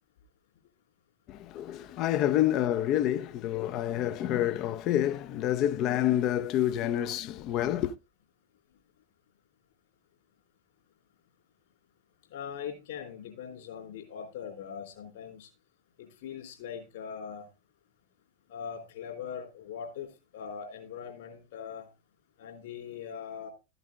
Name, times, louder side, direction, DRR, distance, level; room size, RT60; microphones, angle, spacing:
voice 1, 1.3-7.9, left 12 dB, 35° left, 0.8 m, -28 dB
voice 2, 12.3-15.5 16.0-17.5 18.5-21.9 22.4-23.5, left 7 dB, 55° left, 3.9 m, -41 dB
13.5 x 8.1 x 3.7 m
figure-of-eight pair, 90°, 0 cm